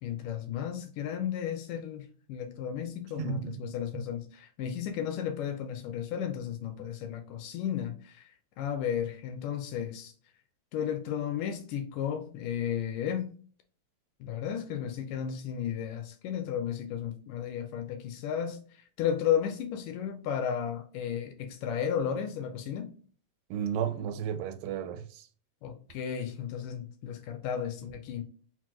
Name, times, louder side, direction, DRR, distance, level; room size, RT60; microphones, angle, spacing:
voice 1, 0.0-8.3 8.6-10.1 10.7-13.3 14.2-18.6 19.0-22.9 25.6-28.2, left 9 dB, 80° left, 2.0 m, -33 dB
voice 2, 3.2-3.6 23.5-25.2, right 8 dB, 90° right, 2.3 m, -33 dB
5.9 x 2.2 x 2.9 m
omnidirectional pair, 3.9 m